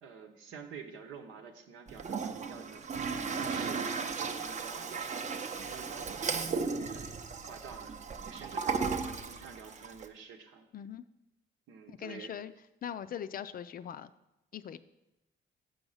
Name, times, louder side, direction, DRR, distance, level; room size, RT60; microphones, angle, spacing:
voice 1, 0.0-2.8 3.4-7.1 7.5-8.0 8.2-10.7 11.7-12.3, right 6 dB, 90° right, 4 dB, 0.9 m, -49 dB
Toilet flush, 1.9-10.1, right 5 dB, 35° right, 0.6 m, -36 dB
voice 2, 11.9-12.5 12.8-14.1 14.5-14.8, left 9 dB, 45° left, 13 dB, 0.4 m, -41 dB
7.0 x 5.3 x 5.5 m, 0.91 s
cardioid pair, 90°, 20 cm